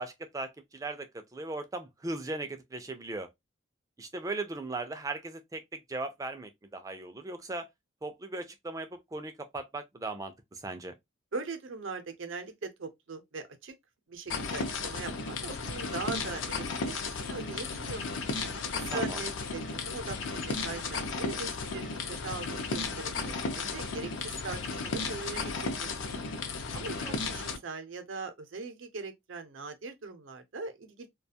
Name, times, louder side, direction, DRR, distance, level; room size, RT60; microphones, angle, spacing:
voice 1, 0.0-3.3 4.0-7.7 8.0-10.9 18.9-19.3 27.0-27.2, right 2 dB, 15° right, 0.3 m, -38 dB
voice 2, 11.3-13.7 14.1-16.6 16.8-18.0 18.7-25.9 26.7-31.1, right 4 dB, 80° right, 0.6 m, -40 dB
sound 1, 14.3-27.6, left 4 dB, 75° left, 0.5 m, -34 dB
2.4 x 2.2 x 2.7 m
head